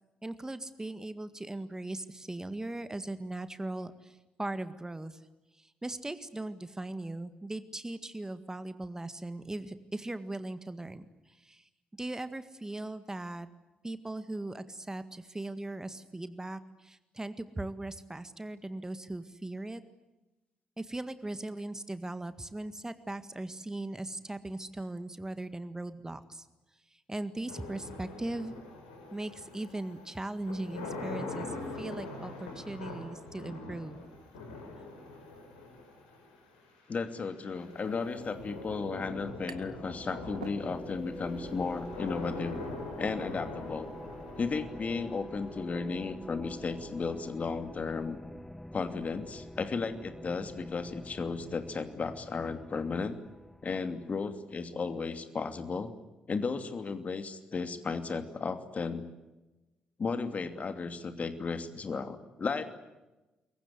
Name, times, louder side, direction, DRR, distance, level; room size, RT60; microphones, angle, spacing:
voice 1, 0.2-5.2 5.5-11.7 12.0-13.5 13.8-19.8 20.8-26.5 26.9-28.5 29.1-34.0, right 2 dB, 15° right, 11 dB, 1.8 m, -39 dB
sound 1, 27.5-46.5, left 2 dB, 80° left, 5.0 m, -43 dB
voice 2, 36.9-42.6 43.0-43.9 44.4-48.2 48.7-53.2 53.6-55.9 56.3-59.1 60.0-62.6, left 4 dB, 40° left, 8 dB, 2.7 m, -34 dB
sound 2, 39.1-54.4, left 1 dB, 5° left, 1.1 m, -47 dB
sound 3, 39.5-39.9 40.2-41.1, right 8 dB, 85° right, 0.9 m, -48 dB
27.5 x 23.0 x 8.3 m, 1.1 s
figure-of-eight pair, 40°, 4 cm